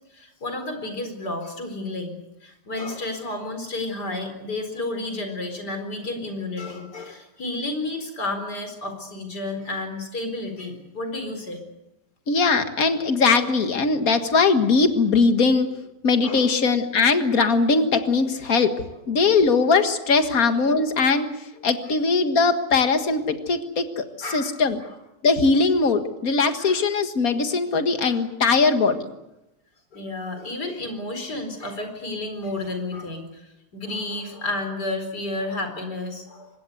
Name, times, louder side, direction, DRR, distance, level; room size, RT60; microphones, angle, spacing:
voice 1, 0.1-11.6 16.2-16.4 21.8-21.9 24.2-24.9 26.6-26.8 28.0-28.2 29.9-36.5, left 2 dB, 80° left, 6 dB, 4.9 m, -31 dB
voice 2, 12.3-15.8 16.0-18.7 19.1-21.3 21.6-24.1 24.3-24.8 25.2-29.1, left 4 dB, 60° left, 8 dB, 2.1 m, -20 dB
24.5 x 20.5 x 8.1 m, 0.94 s
omnidirectional pair, 1.7 m